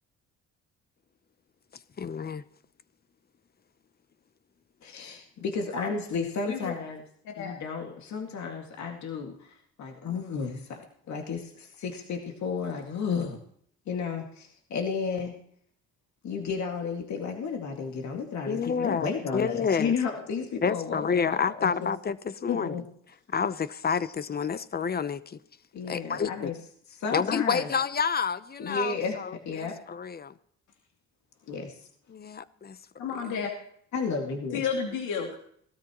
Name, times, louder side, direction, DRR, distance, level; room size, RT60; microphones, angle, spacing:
voice 1, 2.0-2.4 18.5-19.9 20.6-22.7 23.3-25.4 25.8-26.5 27.1-30.3 32.1-32.8 33.1-33.4, left 6 dB, 30° left, 15 dB, 0.8 m, -29 dB
voice 2, 4.8-7.0 7.4-13.4 13.9-15.4 16.2-21.9 22.5-22.8 25.7-26.5 27.0-27.7 28.6-29.8 31.5-31.8 33.9-34.6, left 5 dB, 65° left, 2 dB, 2.2 m, -33 dB
voice 3, 33.0-33.5 34.5-35.4, left 6 dB, 85° left, 0 dB, 2.5 m, -31 dB
18.5 x 13.0 x 3.0 m, 0.64 s
cardioid pair, 90°, 30 cm